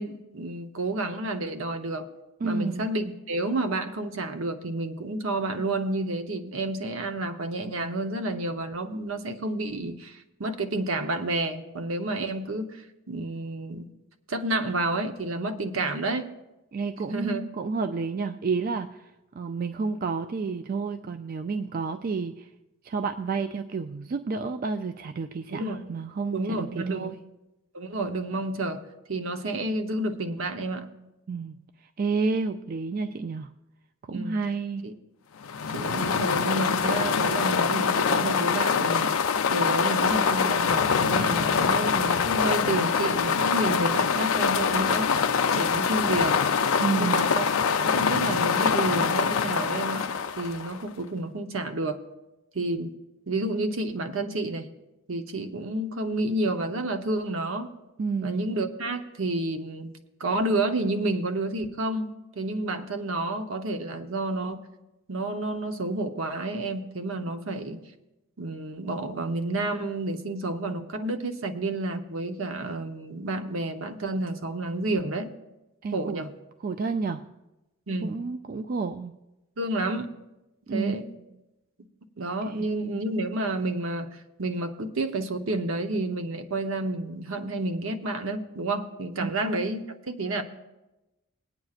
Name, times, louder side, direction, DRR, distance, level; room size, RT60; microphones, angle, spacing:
voice 1, 0.0-2.1 2.4-13.9 14.3-16.3 17.1-17.4 25.5-25.8 26.3-27.2 27.7-28.8 29.1-30.9 34.1-34.4 34.8-34.9 35.7-39.1 39.5-45.1 45.5-46.4 46.9-47.5 47.8-52.0 52.5-52.9 53.3-54.7 55.1-57.7 58.2-59.9 60.2-64.6 65.1-67.8 68.4-75.3 75.9-76.3 77.9-78.2 79.6-80.1 80.7-81.1 82.2-90.4, right 2 dB, 70° right, 7 dB, 0.8 m, -30 dB
voice 2, 2.4-2.9 16.7-22.5 22.8-27.2 31.3-33.5 34.0-35.0 46.8-47.3 58.0-58.4 75.8-76.3 76.6-77.3 78.0-79.1 80.7-81.0 82.5-82.7 89.2-89.3, right 4 dB, 40° right, 8 dB, 0.3 m, -30 dB
sound 1, 35.4-50.9, left 6 dB, 85° left, 0.5 m, -24 dB
20.5 x 9.0 x 2.4 m, 1.0 s
head